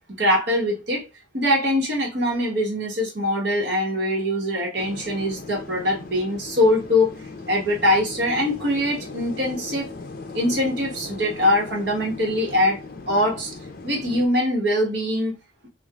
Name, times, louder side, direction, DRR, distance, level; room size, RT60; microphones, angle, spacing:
voice 1, 0.2-1.0 1.3-7.1 7.5-9.9 10.3-12.8 13.1-13.5 13.8-15.3, left 1 dB, 65° right, 1.3 m, -22 dB
sound 1, 4.8-14.3, left 3 dB, 50° left, 0.7 m, -38 dB
4.7 x 2.5 x 2.4 m
head